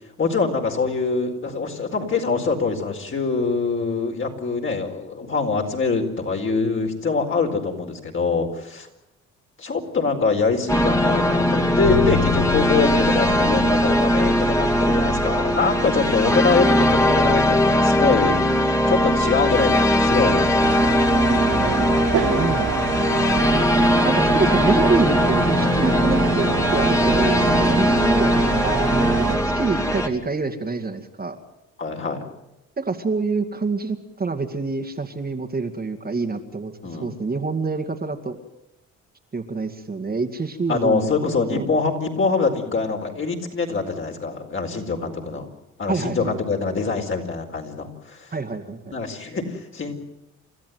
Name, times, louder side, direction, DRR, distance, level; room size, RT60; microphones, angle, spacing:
voice 1, 0.2-8.9 9.6-18.3 18.9-20.8 31.8-32.2 36.8-37.1 40.7-45.5 45.8-48.3 48.9-49.9, left 4 dB, 40° left, 2 dB, 4.5 m, -24 dB
sound 1, 10.7-30.1, equal, 10° left, 2.5 m, -20 dB
sound 2, 11.8-23.5, left 10 dB, 85° left, 1.2 m, -34 dB
sound 3, 20.6-29.4, right 8 dB, 75° right, 3.1 m, -27 dB
voice 2, 21.2-23.5 24.0-31.4 32.8-38.4 39.3-41.1 41.5-41.7 45.9-46.4 48.3-49.0, right 4 dB, 30° right, 5 dB, 2.2 m, -27 dB
30.0 x 13.5 x 9.4 m, 0.91 s
cardioid pair, 90°, 30 cm